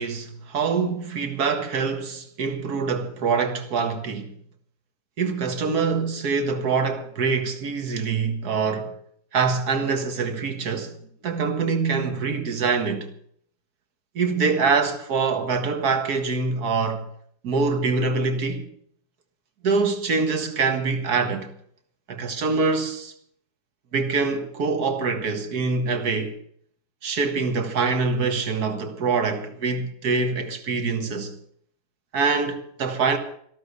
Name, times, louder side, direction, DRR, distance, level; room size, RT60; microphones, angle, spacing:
voice 1, 0.0-4.3 5.2-9.0 9.3-11.0 11.2-13.1 14.2-17.1 17.4-18.7 19.6-21.5 22.1-23.1 23.9-26.4 27.0-31.3 32.1-33.2, right 4 dB, 65° right, 2.0 m, -24 dB
13.5 x 12.5 x 6.8 m
omnidirectional pair, 1.8 m